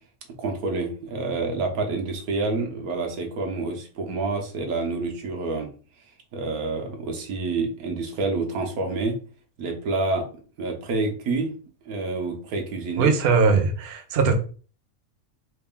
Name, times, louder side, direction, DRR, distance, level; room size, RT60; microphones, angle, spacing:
voice 1, 0.4-5.7 6.3-9.2 9.6-10.3 10.6-11.5 11.9-13.1, right 3 dB, 90° right, 1.3 m, -28 dB
voice 2, 13.0-14.3, right 5 dB, 55° right, 0.8 m, -20 dB
3.3 x 2.5 x 3.5 m
omnidirectional pair, 1.5 m